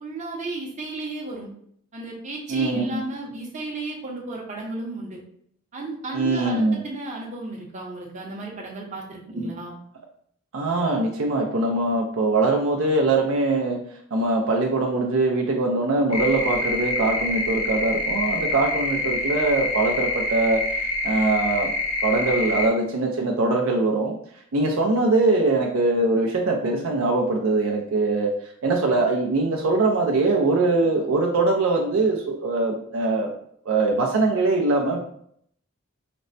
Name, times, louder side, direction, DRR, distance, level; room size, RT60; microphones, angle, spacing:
voice 1, 0.0-1.5 1.9-5.2 5.7-9.7, right 2 dB, 35° right, -2 dB, 0.7 m, -34 dB
voice 2, 2.5-3.0 6.1-6.8 9.4-9.5 10.5-13.8 14.1-20.6 21.0-21.7 22.0-24.2 24.5-28.3 28.6-33.3 33.7-35.0, right 2 dB, 65° right, 0 dB, 0.5 m, -22 dB
sound 1, 16.1-22.7, left 2 dB, 85° left, 0.7 m, -26 dB
5.1 x 2.1 x 2.6 m, 0.66 s
head